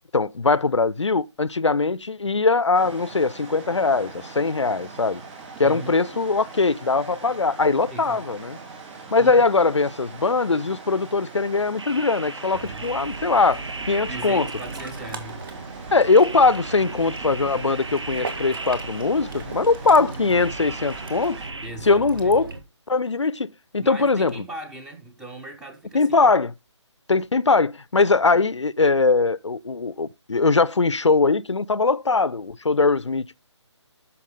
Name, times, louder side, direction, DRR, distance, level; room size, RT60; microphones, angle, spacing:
voice 1, 0.1-5.2 5.6-8.6 9.1-13.6 13.9-14.5 15.9-21.4 21.8-22.5 22.9-24.3 25.9-26.5 27.1-33.4, left 4 dB, 70° left, 0.5 m, -21 dB
sound 1, 2.7-21.5, right 4 dB, 20° right, 3.2 m, -42 dB
voice 2, 5.6-5.9 7.9-8.2 9.1-9.5 12.6-12.9 14.1-15.4 21.6-22.4 23.8-26.1, right 2 dB, 5° right, 0.7 m, -38 dB
sound 2, 11.8-15.2 16.1-19.5 20.4-21.7, right 3 dB, 65° right, 1.1 m, -37 dB
Ocean, 12.5-22.6, right 3 dB, 45° right, 1.9 m, -37 dB
13.5 x 5.9 x 3.9 m
figure-of-eight pair, 150°, 16 cm